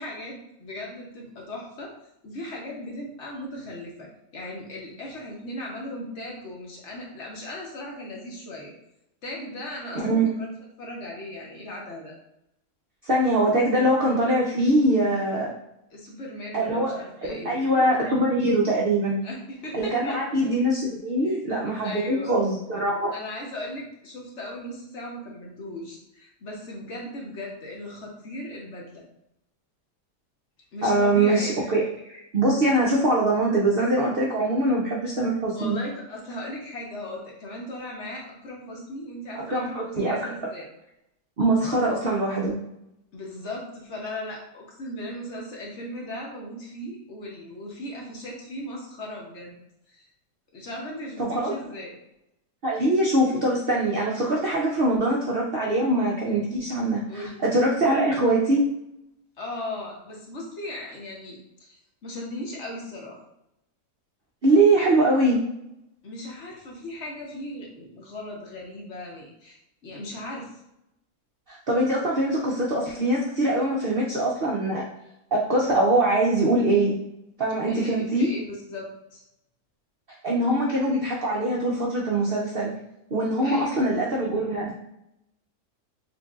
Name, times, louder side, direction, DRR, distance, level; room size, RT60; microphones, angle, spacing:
voice 1, 0.0-1.9 2.2-4.1 4.3-8.7 9.2-10.5 10.8-12.1 15.9-17.7 19.2-20.2 21.2-21.4 21.8-22.4 23.1-29.0 30.7-31.5 35.5-40.7 43.1-49.6 49.9-50.1 50.5-51.9 57.1-57.4 59.4-63.2 66.0-70.6 77.7-79.2 83.4-83.9, left 1 dB, 55° left, -2 dB, 1.1 m, -37 dB
voice 2, 9.9-10.3 13.0-15.5 16.5-17.0 17.4-19.2 19.7-23.1 30.8-35.8 39.4-40.2 41.4-42.6 51.2-51.5 52.6-58.6 64.4-65.4 71.5-74.9 75.3-77.0 77.4-78.3 80.2-82.7 83.1-84.7, right 1 dB, 60° right, -3 dB, 0.6 m, -23 dB
6.6 x 2.6 x 2.4 m, 0.82 s
omnidirectional pair, 1.6 m